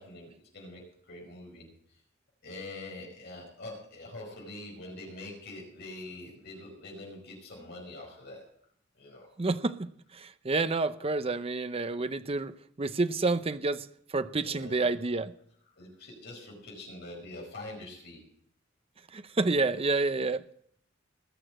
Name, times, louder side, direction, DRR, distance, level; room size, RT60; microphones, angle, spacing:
voice 1, 0.0-1.7 2.4-8.5 9.0-9.3 14.3-14.9 15.8-18.2, left 2 dB, 60° left, -1 dB, 5.2 m, -44 dB
voice 2, 9.4-15.3 19.1-20.4, right 3 dB, 30° right, 12 dB, 0.6 m, -29 dB
19.5 x 6.7 x 7.6 m, 0.65 s
head